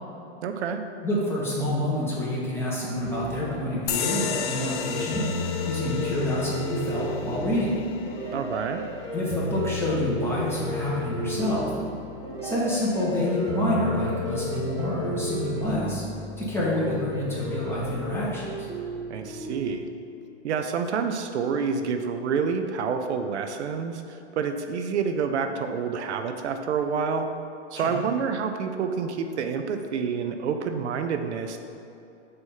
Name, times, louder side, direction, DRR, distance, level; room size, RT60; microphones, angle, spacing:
voice 1, 0.4-0.8 8.3-8.8 19.1-19.8 20.4-27.3 27.7-31.6, right 6 dB, 80° right, 6 dB, 0.6 m, -28 dB
voice 2, 1.0-5.3 5.7-7.7 9.1-11.7 12.4-16.0 16.4-18.7 27.7-28.0, left 1 dB, 5° left, -7 dB, 1.4 m, -28 dB
sound 1, 3.0-19.7, left 1 dB, 10° right, 1.0 m, -33 dB
sound 2, 3.9-10.9, left 7 dB, 55° left, 0.6 m, -35 dB
6.4 x 3.0 x 5.5 m, 2.8 s
hypercardioid pair, 130°, 34 cm